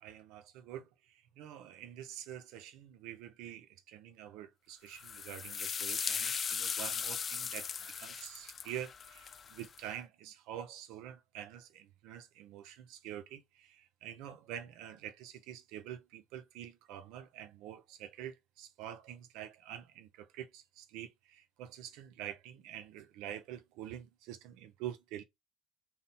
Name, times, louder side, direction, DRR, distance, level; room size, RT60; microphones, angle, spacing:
voice 1, 0.0-25.2, right 11 dB, 75° right, 0.7 m, -47 dB
sound 1, 4.9-9.8, left 6 dB, 40° left, 0.3 m, -38 dB
3.8 x 2.7 x 4.1 m
hypercardioid pair, 70°, 0 cm